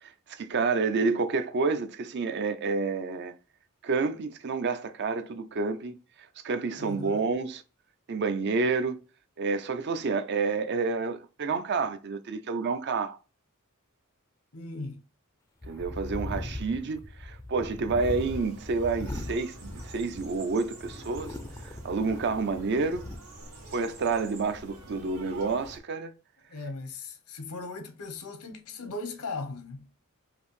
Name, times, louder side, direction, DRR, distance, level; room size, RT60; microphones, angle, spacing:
voice 1, 0.0-3.3 3.8-5.9 6.4-7.6 8.1-9.0 9.4-13.2 15.7-21.4 21.6-23.1 23.7-26.1, right 4 dB, 50° right, 0.5 m, -29 dB
voice 2, 6.8-7.2 14.5-15.0 26.5-29.9, left 3 dB, 85° left, 0.9 m, -38 dB
sound 1, 15.6-20.4 20.8-23.2, left 1 dB, 15° left, 0.4 m, -39 dB
sound 2, 18.0-25.8, right 2 dB, 75° right, 1.6 m, -48 dB
5.1 x 2.6 x 3.1 m
head